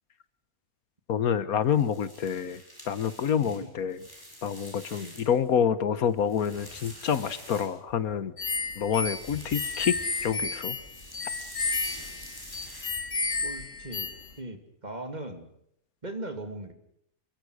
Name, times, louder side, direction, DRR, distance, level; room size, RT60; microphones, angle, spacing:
voice 1, 1.1-2.6 2.9-4.0 4.4-8.3 8.8-10.8, left 8 dB, 90° left, 16 dB, 1.6 m, -27 dB
sound 1, 1.6-5.5 5.9-8.1 8.9-10.5 10.8-13.3, equal, 15° left, 7.3 m, -47 dB
voice 2, 3.4-3.7 5.0-5.2 13.4-14.1 14.4-15.5 16.0-16.7, right 2 dB, 30° right, 7 dB, 2.8 m, -39 dB
sound 2, 8.4-14.3, left 3 dB, 60° left, 2.2 m, -32 dB
27.5 x 22.5 x 6.4 m, 0.72 s
omnidirectional pair, 1.5 m